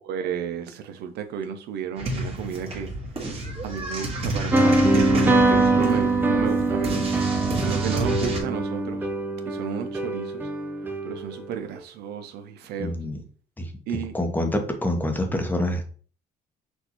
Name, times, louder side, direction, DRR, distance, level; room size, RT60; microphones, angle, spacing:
voice 1, 0.0-2.9 3.6-7.0 7.6-9.0 9.4-10.5 11.0-12.9 13.9-14.1, right 8 dB, 75° right, 0.6 m, -32 dB
sound 1, 2.0-8.4, right 1 dB, 35° right, 1.5 m, -31 dB
sound 2, 4.5-11.4, right 2 dB, 10° right, 0.5 m, -23 dB
voice 2, 12.8-13.2 13.6-13.7 14.1-15.8, left 1 dB, 10° left, 0.9 m, -26 dB
6.2 x 2.6 x 3.0 m
cardioid pair, 110°, 17 cm